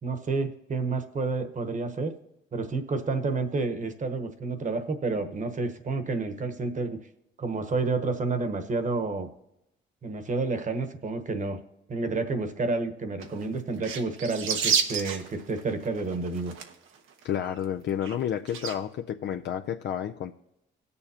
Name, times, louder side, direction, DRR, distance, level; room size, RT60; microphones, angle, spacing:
voice 1, 0.0-2.1 2.5-7.0 7.4-9.3 10.0-11.6 11.9-16.5, right 3 dB, 40° right, 9 dB, 1.1 m, -30 dB
sound 1, 13.2-13.5 13.8-17.0 17.2-17.3 17.6-17.7 18.0-18.2 18.5-18.7, right 6 dB, 85° right, 1.1 m, -30 dB
voice 2, 17.2-20.3, left 9 dB, 65° left, 5 dB, 0.5 m, -30 dB
19.5 x 6.9 x 2.8 m, 0.87 s
cardioid pair, 90°, 20 cm